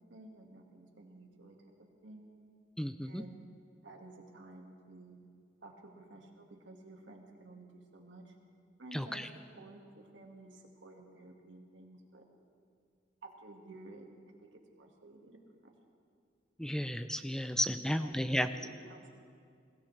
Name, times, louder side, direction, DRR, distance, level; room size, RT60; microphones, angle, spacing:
voice 1, 0.1-1.6 2.0-2.3 3.1-3.4 3.8-5.2 5.6-8.3 8.8-9.2 9.6-12.2 13.2-14.1 14.4-15.7 17.9-19.1, right 2 dB, 80° right, 1 dB, 1.9 m, -53 dB
voice 2, 2.8-3.2 8.9-9.3 16.6-18.5, equal, 5° left, 10 dB, 0.4 m, -33 dB
21.5 x 16.5 x 3.3 m, 2.3 s
head